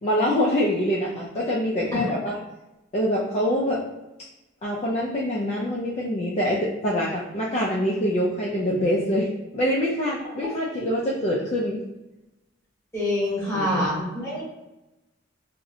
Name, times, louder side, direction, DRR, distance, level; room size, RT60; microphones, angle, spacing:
voice 1, 0.0-2.3 2.9-3.8 4.6-11.8 13.5-14.1, equal, 35° left, -4 dB, 0.3 m, -25 dB
voice 2, 12.9-14.4, left 1 dB, 15° left, -7 dB, 0.9 m, -25 dB
2.6 x 2.0 x 2.7 m, 1.0 s
head